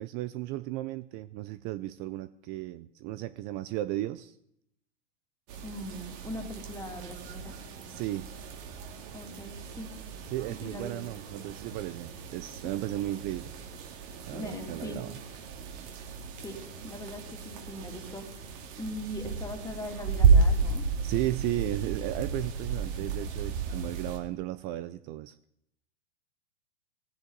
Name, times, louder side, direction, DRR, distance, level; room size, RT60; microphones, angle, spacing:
voice 1, 0.0-4.4 7.9-8.3 10.3-13.5 14.3-15.1 21.0-25.3, right 15 dB, 30° right, 15 dB, 0.5 m, -35 dB
sound 1, 5.5-24.2, right 5 dB, 45° right, 2.9 m, -32 dB
voice 2, 5.6-7.6 9.1-9.9 10.5-11.0 14.3-15.0 16.0-20.8, left 1 dB, 10° left, 3 dB, 2.9 m, -41 dB
17.5 x 15.5 x 4.0 m, 0.73 s
hypercardioid pair, 115°, 36 cm